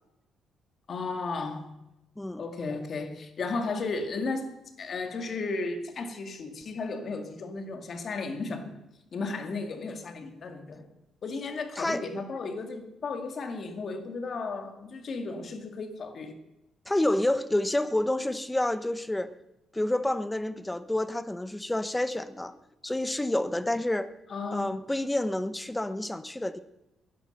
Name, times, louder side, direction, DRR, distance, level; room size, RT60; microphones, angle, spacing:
voice 1, 0.9-1.7 2.4-8.8 9.1-10.9 11.2-16.4 24.3-24.8, left 3 dB, 50° left, 2.2 m, -34 dB
voice 2, 16.9-19.3 19.7-22.5 22.8-24.1 24.5-26.6, left 1 dB, 10° left, 1.0 m, -28 dB
17.5 x 11.0 x 6.7 m
cardioid pair, 90°, 0 cm